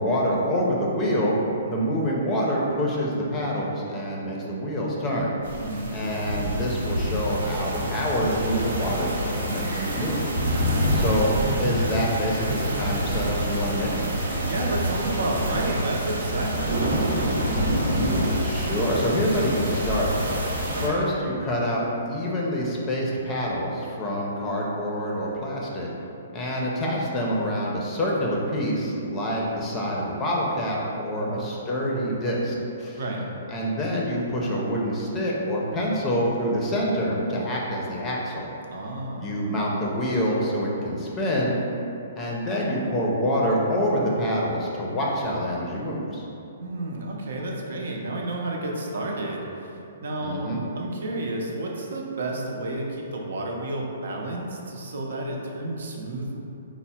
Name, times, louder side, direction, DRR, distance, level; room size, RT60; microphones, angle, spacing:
voice 1, 0.0-1.4 1.7-5.4 5.9-10.3 10.9-13.9 18.4-20.1 20.8-25.9 26.3-33.0 33.5-38.5 39.2-41.6 42.2-46.2 50.2-50.6, equal, 15° left, -4 dB, 0.5 m, -26 dB
sound 1, 5.4-20.9, equal, 85° right, 1.1 m, -27 dB
voice 2, 5.6-5.9 10.5-11.1 14.4-17.5 20.7-21.0 31.2-31.4 33.0-33.3 38.7-39.3 46.6-50.5 50.7-56.4, right 2 dB, 70° right, -1 dB, 0.6 m, -31 dB
4.4 x 2.0 x 4.2 m, 2.9 s
hypercardioid pair, 160°, 0 cm